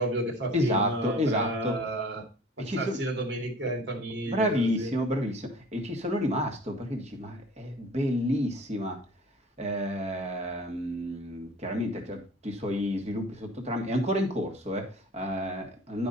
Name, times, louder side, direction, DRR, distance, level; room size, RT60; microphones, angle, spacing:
voice 1, 0.0-2.2 2.6-4.9, right 1 dB, 60° right, 2.5 m, -32 dB
voice 2, 0.5-1.7 2.6-3.0 4.3-9.0 9.6-16.1, equal, 35° right, 1.8 m, -30 dB
11.5 x 5.4 x 4.2 m
head